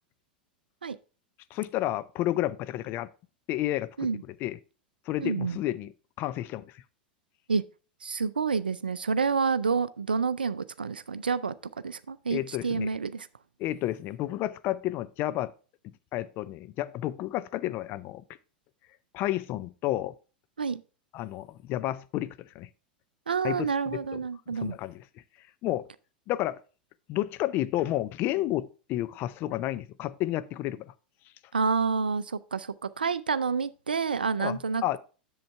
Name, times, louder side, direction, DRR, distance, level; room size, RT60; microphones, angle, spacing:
voice 1, 1.5-3.1 3.5-4.6 5.1-5.9 6.2-6.8 12.3-12.9 13.6-15.5 16.1-18.2 19.1-20.2 21.1-22.7 23.4-24.2 24.5-25.0 25.6-25.9 26.3-26.6 27.1-30.9 34.4-35.0, left 14 dB, 45° left, 0.5 m, -31 dB
voice 2, 5.2-5.6 7.5-7.6 8.0-11.5 11.8-13.3 20.6-20.8 23.3-24.8 31.5-35.0, right 5 dB, 85° right, 0.4 m, -28 dB
7.8 x 7.2 x 3.4 m
figure-of-eight pair, 90°, 5 cm